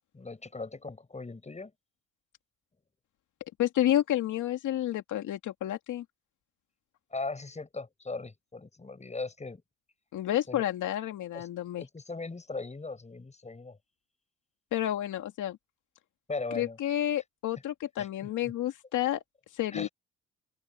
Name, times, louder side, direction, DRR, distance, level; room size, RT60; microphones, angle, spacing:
voice 1, 0.1-1.7 7.1-9.6 10.5-10.6 11.3-11.5 11.8-13.8 16.3-16.8 18.0-18.1 19.7-19.9, left 3 dB, 20° left, 7.8 m, -38 dB
voice 2, 3.6-6.0 10.1-11.8 14.7-15.6 16.5-19.2 19.5-19.9, left 12 dB, 80° left, 2.3 m, -30 dB
open air
cardioid pair, 90°, 30 cm